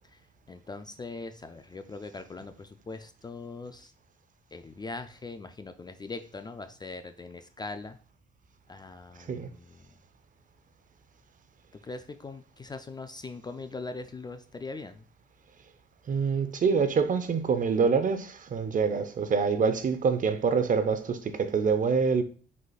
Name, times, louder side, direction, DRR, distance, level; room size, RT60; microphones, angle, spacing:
voice 1, 0.5-3.9 4.5-8.0 8.7-9.8 11.8-15.0, left 3 dB, 20° left, 0.3 m, -41 dB
voice 2, 16.1-22.2, right 5 dB, 40° right, 0.6 m, -26 dB
4.6 x 4.2 x 2.3 m
cardioid pair, 90°, 20 cm